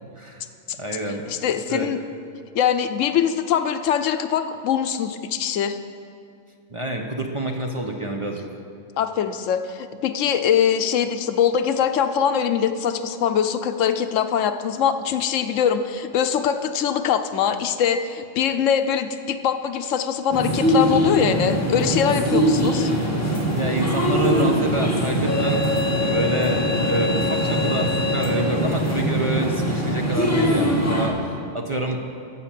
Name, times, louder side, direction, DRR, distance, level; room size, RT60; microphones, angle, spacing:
voice 1, 0.8-1.9 6.7-8.4 23.6-25.6 26.0-32.0, right 1 dB, 30° right, 2 dB, 0.7 m, -27 dB
voice 2, 1.3-2.0 2.5-5.8 9.0-22.9, left 8 dB, 80° left, 9 dB, 1.0 m, -22 dB
sound 1, 20.3-31.1, equal, 10° left, 1.6 m, -22 dB
13.5 x 5.8 x 7.5 m, 2.4 s
omnidirectional pair, 1.3 m